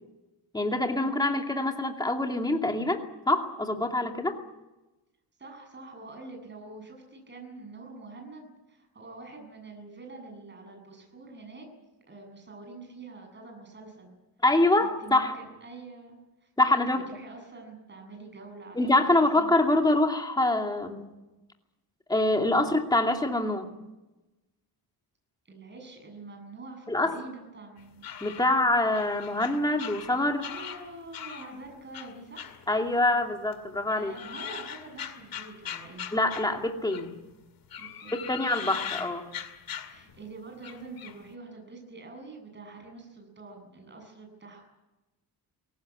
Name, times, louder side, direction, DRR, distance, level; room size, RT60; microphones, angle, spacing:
voice 1, 0.5-4.4 14.4-15.4 16.6-17.1 18.8-21.1 22.1-23.7 26.9-27.2 28.2-30.4 32.7-34.1 36.1-37.1 38.1-39.3, left 2 dB, 10° left, 3 dB, 2.6 m, -25 dB
voice 2, 5.4-11.7 12.1-14.2 14.8-16.5 16.9-18.8 19.4-19.7 25.4-28.1 30.2-32.6 33.9-36.1 37.8-38.4 38.7-39.0 39.8-44.6, right 3 dB, 25° right, 3 dB, 7.9 m, -46 dB
sound 1, 27.8-31.6 31.9-33.2 33.5-37.2 37.6-40.3 40.6-41.2, left 9 dB, 55° left, 2.3 m, -41 dB
22.5 x 18.5 x 9.9 m, 1.0 s
cardioid pair, 140°, 40 cm